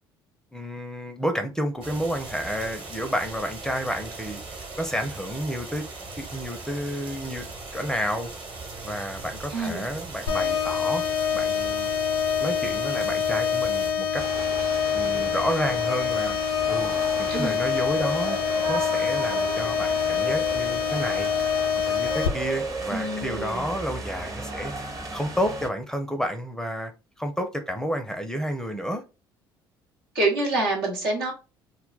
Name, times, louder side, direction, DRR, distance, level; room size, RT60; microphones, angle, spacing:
voice 1, 0.5-5.9 6.2-7.5 7.7-8.3 8.8-11.0 11.3-11.9 12.4-14.2 14.9-16.4 16.7-16.9 17.2-18.4 18.7-21.3 21.9-24.7 25.1-26.9 27.2-29.0, equal, 5° left, 0.5 m, -30 dB
sound 1, 1.8-13.9, right 3 dB, 45° right, 1.1 m, -39 dB
voice 2, 9.5-9.9 17.3-17.6 22.9-23.7 30.1-31.3, right 2 dB, 80° right, 1.0 m, -27 dB
sound 2, 10.3-22.3, left 7 dB, 80° left, 0.5 m, -26 dB
sound 3, 14.2-25.7, right 2 dB, 30° right, 0.8 m, -34 dB
2.2 x 2.1 x 3.8 m
hypercardioid pair, 55°, 12 cm